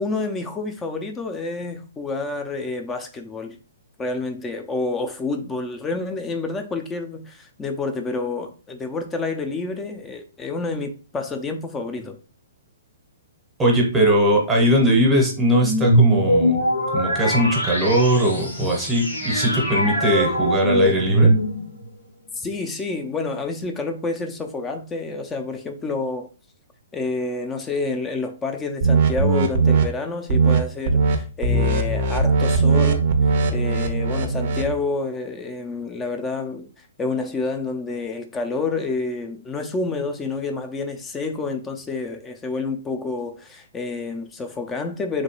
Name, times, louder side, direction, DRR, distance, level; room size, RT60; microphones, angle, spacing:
voice 1, 0.0-3.6 4.0-12.2 22.3-26.3 26.9-33.1 33.5-36.7 37.0-45.2, left 3 dB, 15° left, 0.5 m, -28 dB
voice 2, 13.6-16.6 16.9-21.3, equal, 15° right, 0.8 m, -20 dB
sound 1, 15.6-21.9, equal, 85° left, 1.1 m, -21 dB
sound 2, 28.8-29.8 30.3-30.6 30.9-31.2 31.4-34.7, right 4 dB, 50° right, 0.5 m, -19 dB
3.1 x 2.2 x 2.9 m
hypercardioid pair, 130°, 0 cm